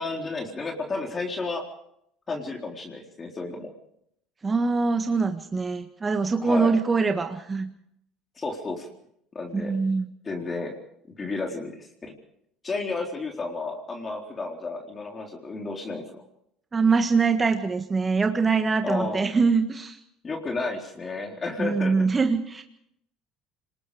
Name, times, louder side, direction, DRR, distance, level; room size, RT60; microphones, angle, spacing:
voice 1, 0.0-1.6 2.3-3.7 6.4-6.7 8.4-8.9 9.3-9.7 10.2-10.7 11.2-12.1 12.6-16.2 18.8-19.2 20.2-21.9, left 3 dB, 30° left, 1 dB, 4.0 m, -32 dB
voice 2, 4.4-7.7 9.5-10.1 16.7-20.0 21.6-22.6, right 4 dB, 25° right, 6 dB, 1.6 m, -23 dB
27.0 x 20.5 x 5.0 m, 0.74 s
hypercardioid pair, 80°, 0 cm